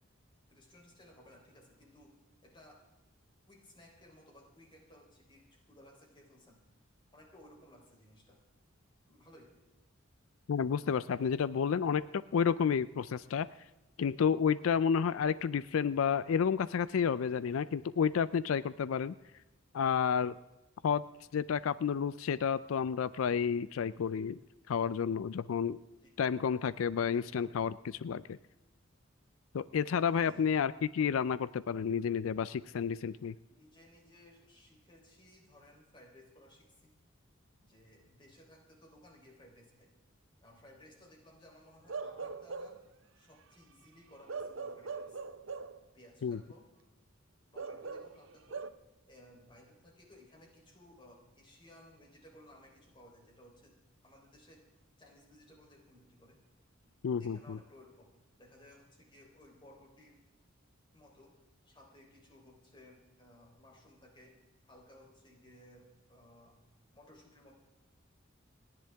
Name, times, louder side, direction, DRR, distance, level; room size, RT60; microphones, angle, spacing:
voice 1, 0.5-2.1 2.4-2.8 3.5-6.6 7.1-8.4 9.1-9.5 26.0-26.2 30.2-30.5 33.5-36.9 37.6-39.9 40.4-42.8 43.1-45.2 45.9-46.9 47.5-48.7 49.1-53.8 54.0-54.6 55.0-56.4 56.8-56.9 57.2-60.2 60.9-61.4 61.6-64.3 64.6-66.6 66.9-67.5, left 1 dB, 25° left, 0 dB, 3.6 m, -59 dB
voice 2, 10.5-13.5 14.0-19.1 19.7-20.4 20.8-21.0 21.3-24.4 24.7-25.8 26.2-28.4 29.5-33.3 46.2-46.4 57.0-57.6, left 7 dB, 85° left, 17 dB, 0.4 m, -31 dB
Bark / Livestock farm animals working animals, 41.9-42.9 44.3-45.8 47.6-48.7, right 4 dB, 65° right, 0.7 m, -41 dB
29.0 x 10.5 x 3.5 m, 1.1 s
head